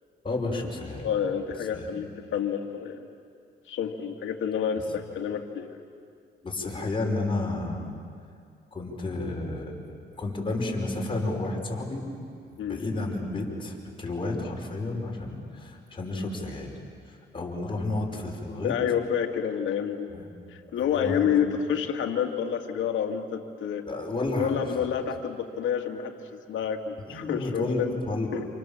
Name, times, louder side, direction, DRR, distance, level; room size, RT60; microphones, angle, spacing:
voice 1, 0.2-1.1 1.7-1.9 6.4-7.9 8.7-12.1 12.5-16.7 17.1-18.7 20.1-20.3 20.7-21.3 23.9-24.8 27.1-28.3, left 2 dB, 25° left, -1 dB, 5.5 m, -31 dB
voice 2, 1.0-3.1 3.7-5.8 12.6-12.8 18.6-20.1 20.5-23.9 24.4-28.0 28.3-28.5, left 8 dB, 75° left, 3 dB, 2.2 m, -29 dB
28.0 x 28.0 x 7.3 m, 2.3 s
cardioid pair, 90°, 20 cm